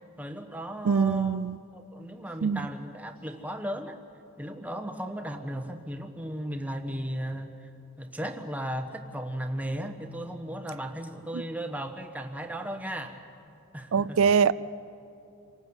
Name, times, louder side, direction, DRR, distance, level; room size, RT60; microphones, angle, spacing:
voice 1, 0.2-1.4 1.7-4.0 4.4-7.5 8.0-13.2 13.7-14.2, equal, 5° right, 1.1 m, -36 dB
voice 2, 0.9-1.6 2.4-2.6 13.9-14.5, right 6 dB, 70° right, 0.4 m, -23 dB
27.0 x 18.5 x 8.0 m
head